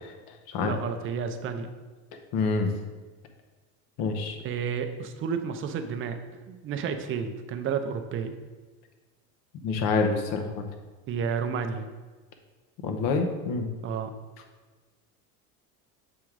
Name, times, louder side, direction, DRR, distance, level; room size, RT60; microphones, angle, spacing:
voice 1, 0.6-1.7 4.4-6.2 6.5-8.3 11.1-11.9 13.8-14.1, right 6 dB, 35° right, 7 dB, 0.5 m, -31 dB
voice 2, 2.3-2.7 4.0-4.4 9.6-10.6 12.8-13.7, left 4 dB, 65° left, 5 dB, 1.0 m, -27 dB
7.2 x 3.7 x 4.6 m, 1.3 s
cardioid pair, 150°, 36 cm